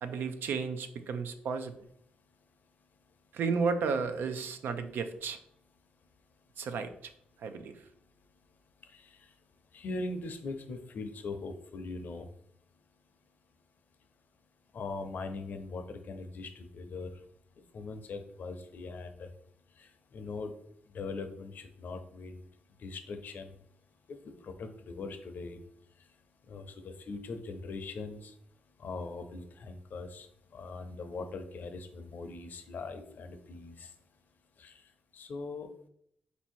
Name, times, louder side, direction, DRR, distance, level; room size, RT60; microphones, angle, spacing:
voice 1, 0.0-1.7 3.3-5.4 6.6-6.9 7.4-7.8, right 5 dB, 80° right, 9 dB, 0.5 m, -33 dB
voice 2, 9.7-12.3 14.7-17.1 17.7-19.3 20.1-20.5 20.9-22.4 22.8-23.5 24.1-25.6 26.5-28.3 28.8-30.3 30.5-33.9 34.6-34.7 35.1-35.7, left 3 dB, 60° left, 7 dB, 0.6 m, -41 dB
4.1 x 2.7 x 4.4 m, 0.70 s
cardioid pair, 115°, 3 cm